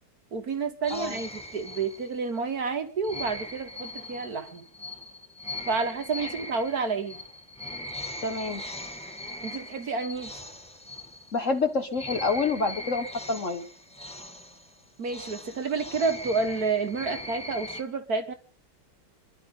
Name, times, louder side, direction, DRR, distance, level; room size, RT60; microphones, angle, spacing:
voice 1, 0.3-4.7 5.7-7.2 9.4-10.4 15.0-18.3, right 4 dB, 50° right, 7 dB, 1.8 m, -30 dB
sound 1, 0.8-2.4 3.0-11.6 11.9-17.8, left 1 dB, 5° left, 0.8 m, -40 dB
voice 2, 8.2-8.6 11.3-13.6, left 4 dB, 40° left, 7 dB, 1.5 m, -28 dB
26.5 x 12.0 x 3.8 m, 0.35 s
omnidirectional pair, 2.2 m